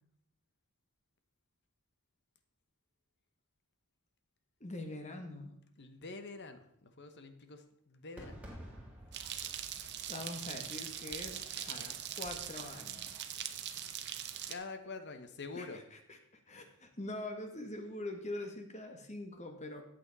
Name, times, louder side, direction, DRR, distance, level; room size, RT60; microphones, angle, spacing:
voice 1, 4.6-5.5 10.1-13.1 15.5-19.8, left 2 dB, 30° left, 6 dB, 1.6 m, -44 dB
voice 2, 5.8-8.4 14.5-15.8, left 3 dB, 50° left, 8 dB, 1.1 m, -46 dB
Fireworks, 8.2-13.2, equal, 5° right, 2.7 m, -54 dB
sound 1, 9.1-14.5, right 10 dB, 50° right, 0.9 m, -42 dB
14.0 x 8.7 x 4.1 m, 0.72 s
head